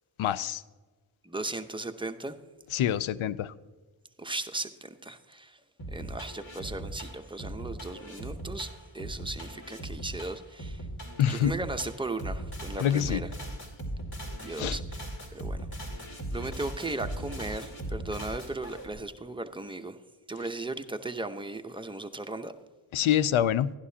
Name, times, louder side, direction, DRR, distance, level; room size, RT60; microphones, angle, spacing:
voice 1, 0.2-0.6 2.7-3.5 11.2-11.5 12.8-13.2 14.6-14.8 22.9-23.7, left 10 dB, 75° left, 0.5 m, -26 dB
voice 2, 1.2-2.3 4.2-5.6 5.9-10.9 11.3-13.3 14.4-15.0 15.3-15.9 16.3-20.0 20.3-22.5, right 2 dB, 10° right, 0.8 m, -37 dB
sound 1, 5.8-19.0, right 1 dB, 45° left, 2.6 m, -38 dB
11.5 x 11.0 x 2.8 m
cardioid pair, 40°, 49 cm